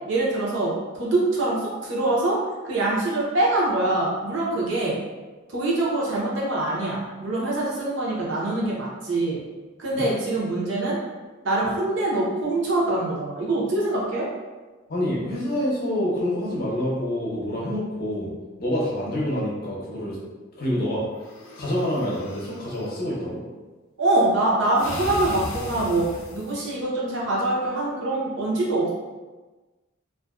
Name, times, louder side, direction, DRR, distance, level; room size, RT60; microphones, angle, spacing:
voice 1, 0.1-2.4 2.6-5.0 5.5-9.4 9.8-11.0 11.4-14.3 24.0-28.9, right 2 dB, 65° right, -5 dB, 0.7 m, -24 dB
voice 2, 14.9-18.3 18.6-20.2 20.5-21.1 21.6-23.4, left 1 dB, 45° left, -5 dB, 0.7 m, -27 dB
sound 1, 21.2-22.9 24.8-26.7, left 2 dB, 85° left, 0.5 m, -37 dB
2.4 x 2.1 x 2.3 m, 1.2 s
head